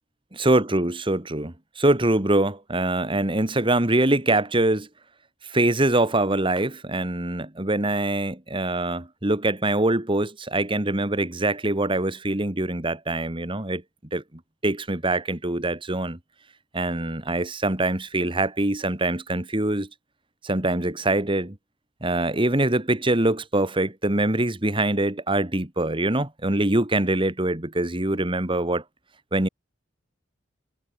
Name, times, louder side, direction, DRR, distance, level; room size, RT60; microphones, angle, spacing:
voice 1, 0.3-4.9 5.5-13.8 14.1-14.2 14.6-16.2 16.7-19.9 20.4-21.6 22.0-28.8 29.3-29.5, right 2 dB, 30° right, 2.0 m, -24 dB
head